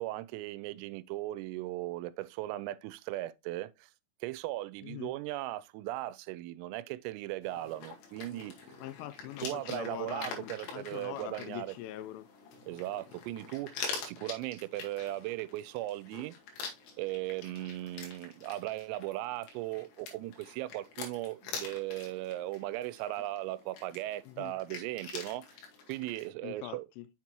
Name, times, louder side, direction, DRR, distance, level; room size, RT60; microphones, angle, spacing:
voice 1, 0.0-3.9 4.2-8.5 9.4-11.7 12.7-16.4 17.0-25.4 25.9-26.9, right 16 dB, 90° right, 3.2 m, -37 dB
voice 2, 4.8-5.1 8.8-12.3 24.3-24.5 26.4-27.1, left 13 dB, 85° left, 3.0 m, -43 dB
sound 1, 7.4-26.3, left 5 dB, 70° left, 3.0 m, -46 dB
7.0 x 6.0 x 2.9 m
omnidirectional pair, 5.9 m